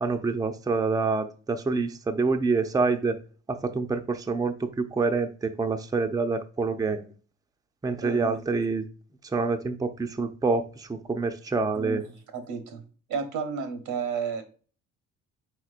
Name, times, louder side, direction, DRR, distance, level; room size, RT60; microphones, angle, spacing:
voice 1, 0.0-3.2 3.5-7.1 7.8-8.9 9.2-12.0, right 4 dB, 10° right, 6 dB, 0.5 m, -27 dB
voice 2, 8.0-8.4 11.7-12.1 12.5-12.8 13.1-14.4, right 6 dB, 90° right, 6 dB, 1.1 m, -32 dB
4.4 x 4.4 x 2.4 m, 0.38 s
cardioid pair, 90°, 30 cm